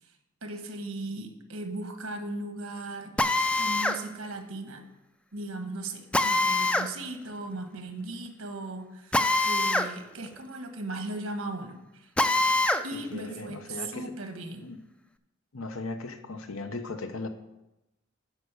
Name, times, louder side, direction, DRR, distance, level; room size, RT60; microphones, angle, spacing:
voice 1, 0.4-3.2 3.6-4.8 5.3-12.1 12.4-12.5 12.8-14.6, right 2 dB, 85° right, 6 dB, 1.3 m, -37 dB
Drill, 3.2-4.0 6.1-6.9 9.1-9.9 10.3-10.4 12.2-12.8, left 2 dB, 5° left, 0.3 m, -24 dB
voice 2, 12.7-14.1 14.6-14.8 15.5-17.3, left 3 dB, 90° left, 7 dB, 1.0 m, -38 dB
9.3 x 5.3 x 6.7 m, 0.94 s
head